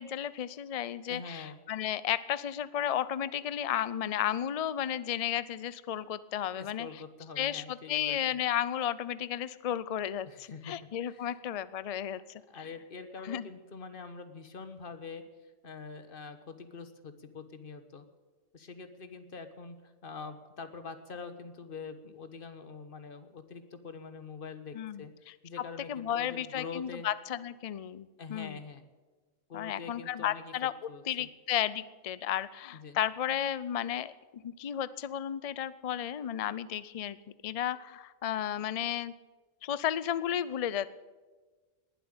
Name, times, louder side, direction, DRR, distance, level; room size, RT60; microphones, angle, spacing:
voice 1, 0.0-7.0 7.4-12.2 13.2-13.5 24.7-25.0 25.6-28.6 29.5-30.7 31.1-37.2 37.4-39.1 39.6-40.9, left 10 dB, 70° left, 17 dB, 0.3 m, -33 dB
voice 2, 1.1-1.6 6.5-8.4 10.2-10.7 11.0-11.4 12.5-18.0 18.5-19.8 20.0-25.1 25.4-27.1 28.2-28.8 29.5-30.5 30.9-31.3 32.7-33.0, left 5 dB, 45° left, 10 dB, 1.4 m, -45 dB
19.5 x 7.8 x 8.9 m, 1.3 s
omnidirectional pair, 1.3 m